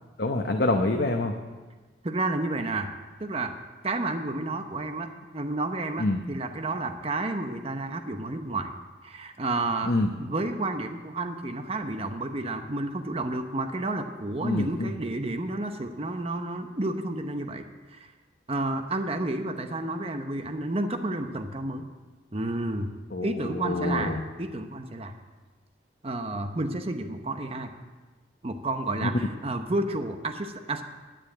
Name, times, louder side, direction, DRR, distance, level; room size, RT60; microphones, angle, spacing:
voice 1, 0.2-1.3 6.0-6.2 9.8-10.1 14.4-14.9 23.1-24.2 29.0-29.1, left 2 dB, 60° left, 3 dB, 0.9 m, -26 dB
voice 2, 2.0-2.9 3.2-3.5 3.8-8.7 9.0-9.9 10.2-18.1 18.5-21.9 22.3-22.9 23.2-25.1 26.0-27.7 28.4-30.8, right 2 dB, 35° right, 6 dB, 0.8 m, -31 dB
10.0 x 9.0 x 8.9 m, 1.3 s
head